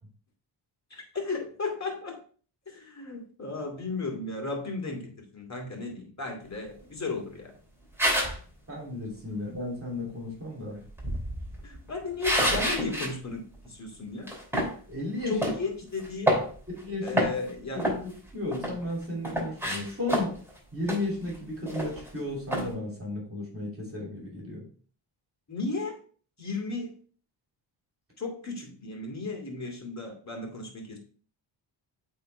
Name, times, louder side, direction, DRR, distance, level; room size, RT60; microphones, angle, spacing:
voice 1, 0.9-2.2 2.7-7.5 11.6-14.3 15.3-16.4 17.0-17.9 25.5-26.0 26.4-26.9 28.2-31.0, left 3 dB, 35° left, 2 dB, 2.5 m, -35 dB
sound 1, 8.0-8.4 10.9-13.1 13.5-13.7 14.3-14.7 15.4-15.6 16.0-16.8 17.1-17.5 17.8-18.8 19.2-20.5 20.9-21.0 21.3-21.4 21.7-22.1 22.5-22.7, equal, 5° right, 3.0 m, -28 dB
voice 2, 8.7-10.8 14.9-15.4 16.8-17.3 17.7-20.4 20.7-24.6, left 2 dB, 25° right, -2 dB, 2.8 m, -34 dB
8.2 x 3.8 x 3.3 m, 0.43 s
cardioid pair, 70°, 49 cm